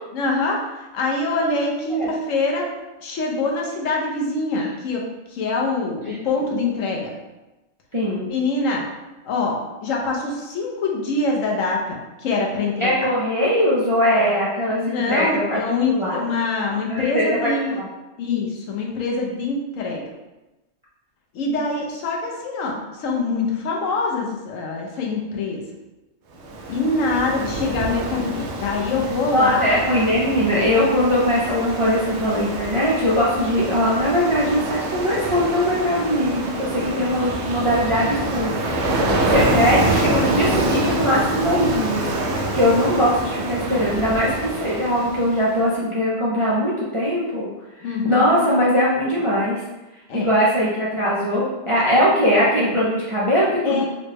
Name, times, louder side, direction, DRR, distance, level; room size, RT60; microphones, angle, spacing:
voice 1, 0.1-2.6 3.0-5.0 5.3-7.1 8.3-8.8 9.2-12.0 12.2-12.9 14.8-17.8 18.2-20.0 21.3-25.6 26.7-29.6 39.1-39.4 47.8-48.3 50.1-50.3 53.6-53.8, left 3 dB, 85° left, -1 dB, 1.1 m, -24 dB
voice 2, 7.9-8.3 12.8-15.6 15.9-16.2 16.9-17.9 29.3-38.5 39.3-47.5 47.9-49.6 50.1-53.8, equal, 40° right, -7 dB, 0.4 m, -21 dB
Ocean, 26.4-45.5, right 2 dB, 70° right, 0.8 m, -26 dB
3.9 x 2.1 x 3.3 m, 1.1 s
omnidirectional pair, 1.3 m